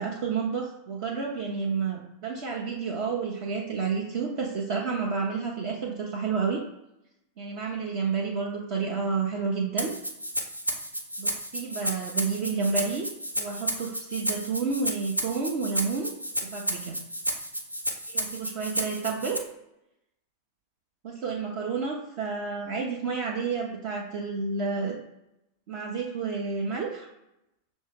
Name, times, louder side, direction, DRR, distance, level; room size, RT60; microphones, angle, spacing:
voice 1, 0.0-6.6 7.4-9.9 11.2-13.1 13.4-16.1 16.5-17.0 18.1-19.4 21.0-25.0 25.7-27.1, right 5 dB, 50° right, -2 dB, 0.6 m, -30 dB
Rattle (instrument), 9.8-19.4, equal, 85° right, 0.4 m, -32 dB
6.1 x 2.0 x 3.5 m, 0.88 s
figure-of-eight pair, 90°, 0 cm